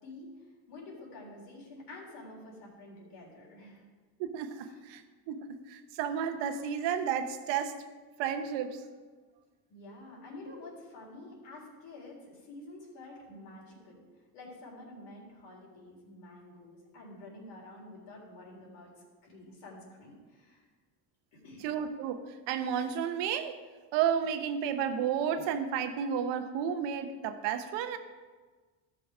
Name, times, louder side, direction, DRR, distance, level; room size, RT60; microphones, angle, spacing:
voice 1, 0.0-3.9 4.6-4.8 9.7-14.0 14.3-18.9 19.2-20.7 21.3-21.7, left 2 dB, 80° left, -3 dB, 3.6 m, -49 dB
voice 2, 4.2-5.0 5.3-7.8 8.2-8.8 21.6-23.6 23.9-28.0, right 8 dB, 85° right, 8 dB, 1.0 m, -32 dB
13.5 x 6.0 x 4.9 m, 1.4 s
cardioid pair, 120°, 42 cm